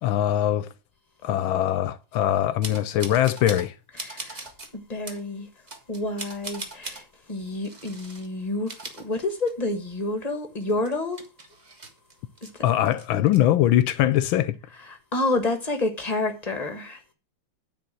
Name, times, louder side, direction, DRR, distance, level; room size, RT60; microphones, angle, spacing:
voice 1, 0.0-0.7 1.2-3.7 12.6-14.5, left 12 dB, 75° left, 1.3 m, -22 dB
sound 1, 2.6-3.7 4.0-4.7 5.0-5.2 5.7-7.0 7.6-8.3 8.6-9.8 10.1-10.2 10.6-12.5 12.8-13.4, right 2 dB, 25° right, 1.0 m, -39 dB
voice 2, 4.0-5.5 5.9-11.2 12.4-12.6 14.8-17.0, left 2 dB, 25° left, 1.0 m, -29 dB
9.6 x 4.2 x 7.5 m
omnidirectional pair, 2.3 m